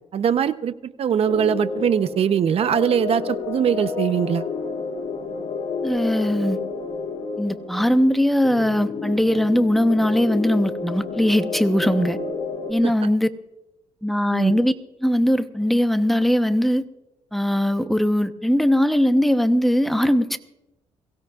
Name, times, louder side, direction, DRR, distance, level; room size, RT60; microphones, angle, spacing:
voice 1, 0.1-4.5 12.8-13.1 14.3-14.6, right 8 dB, 55° right, 13 dB, 0.8 m, -22 dB
sound 1, 1.2-12.7, left 4 dB, 75° left, 4.0 m, -30 dB
voice 2, 5.8-6.6 7.4-12.2 12.7-13.3 14.0-14.7 15.0-16.8 17.3-20.4, equal, ahead, 9 dB, 0.9 m, -20 dB
23.0 x 16.5 x 2.4 m, 0.94 s
cardioid pair, 85°, 12 cm